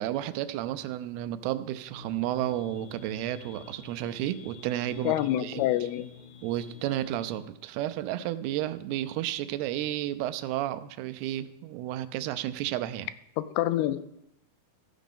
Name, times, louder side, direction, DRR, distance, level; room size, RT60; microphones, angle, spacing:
voice 1, 0.0-5.2 5.4-5.6 6.4-13.1, right 13 dB, 90° right, 12 dB, 2.6 m, -32 dB
sound 1, 1.9-7.4, left 4 dB, 60° left, 1.0 m, -48 dB
voice 2, 5.0-6.1 13.4-14.0, left 14 dB, 90° left, 13 dB, 2.6 m, -27 dB
14.5 x 5.0 x 5.3 m, 0.82 s
omnidirectional pair, 4.5 m